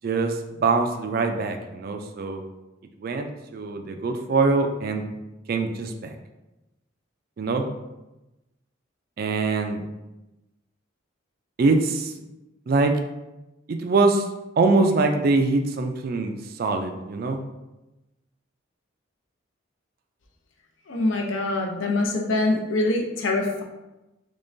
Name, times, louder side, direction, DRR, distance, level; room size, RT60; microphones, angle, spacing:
voice 1, 0.0-2.4 3.0-3.3 3.5-5.0 5.5-6.1 7.4-7.7 9.2-9.8 11.6-12.1 12.7-12.9 13.7-14.2 14.6-17.4, right 3 dB, 50° right, 5 dB, 0.3 m, -23 dB
voice 2, 20.9-23.6, left 2 dB, 70° left, 1 dB, 0.6 m, -24 dB
3.6 x 3.1 x 2.6 m, 1.0 s
head